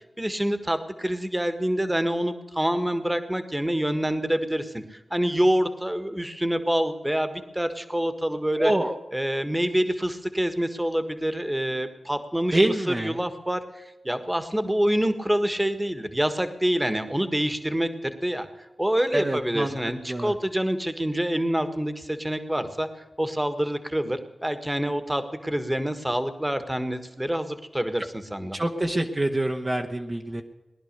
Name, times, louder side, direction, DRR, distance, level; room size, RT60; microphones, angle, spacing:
voice 1, 0.2-8.7 9.1-12.6 12.9-18.5 18.8-22.9 23.2-28.6, equal, 10° right, 9 dB, 1.6 m, -26 dB
voice 2, 8.6-9.0 12.5-13.2 19.1-20.3 28.5-30.4, right 1 dB, 35° right, 1 dB, 1.2 m, -26 dB
19.5 x 11.0 x 6.7 m, 1.1 s
wide cardioid pair, 60°, 0 cm